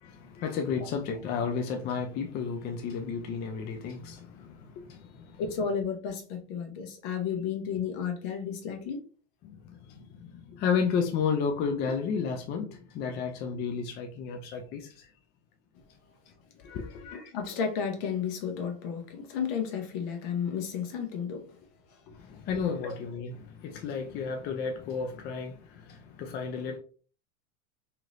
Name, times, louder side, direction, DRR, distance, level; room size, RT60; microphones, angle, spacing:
voice 1, 0.0-5.4 9.4-15.1 16.6-17.1 22.2-26.8, left 6 dB, 30° left, 0.4 m, -32 dB
voice 2, 5.4-9.0 17.0-21.5 22.8-22.9, left 7 dB, 55° left, 0.9 m, -32 dB
3.0 x 2.8 x 2.5 m
hypercardioid pair, 115°, 35 cm